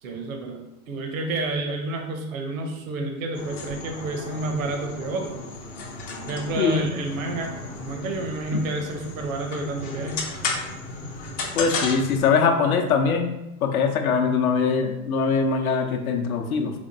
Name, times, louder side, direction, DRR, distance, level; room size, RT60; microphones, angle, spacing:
voice 1, 0.0-5.4 6.2-10.3, right 2 dB, 65° right, 3 dB, 0.7 m, -30 dB
sound 1, 3.3-12.3, left 3 dB, 20° left, 0.3 m, -34 dB
voice 2, 6.6-6.9 8.5-8.6 11.6-13.3 13.6-16.7, left 5 dB, 70° left, 5 dB, 0.7 m, -22 dB
3.4 x 3.2 x 2.6 m, 0.90 s
hypercardioid pair, 95°, 44 cm